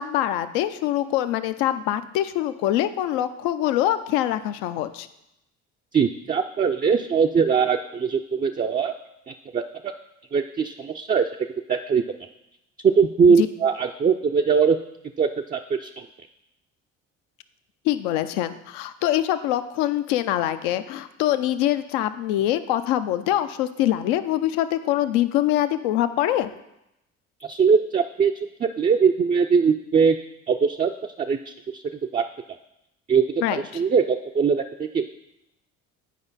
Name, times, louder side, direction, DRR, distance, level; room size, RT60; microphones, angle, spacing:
voice 1, 0.0-5.1 13.4-13.5 17.8-26.5 33.4-33.8, left 12 dB, 70° left, 11 dB, 0.6 m, -24 dB
voice 2, 5.9-8.9 9.3-9.9 10.3-11.2 11.7-12.0 12.8-14.8 15.2-16.1 27.4-28.3 28.6-30.2 30.5-30.9 31.2-31.8 32.1-32.2 33.1-33.3 33.5-35.1, right 6 dB, 20° right, 4 dB, 0.4 m, -21 dB
9.3 x 5.0 x 4.1 m, 0.86 s
hypercardioid pair, 55°, 39 cm